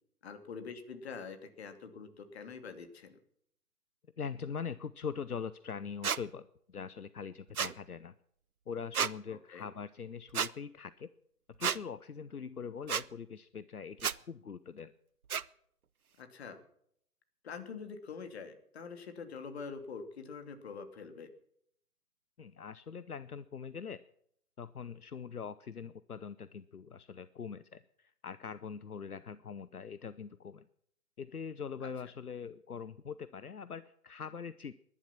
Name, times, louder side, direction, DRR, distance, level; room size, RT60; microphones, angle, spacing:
voice 1, 0.2-3.2 9.3-9.6 16.2-16.6 17.4-21.3 31.8-31.9, left 5 dB, 45° left, 8 dB, 2.8 m, -45 dB
voice 2, 4.2-8.1 8.7-11.1 11.6-14.9 22.4-24.0 24.6-30.7 31.2-34.7, left 6 dB, 75° left, 15 dB, 0.9 m, -42 dB
sound 1, 6.0-6.2 7.5-7.7 8.9-9.1 10.3-10.5 11.6-11.8 12.9-13.0 14.0-14.2 15.3-15.4, right 7 dB, 65° right, 0.8 m, -31 dB
20.5 x 11.0 x 5.9 m, 0.69 s
figure-of-eight pair, 135°, 46 cm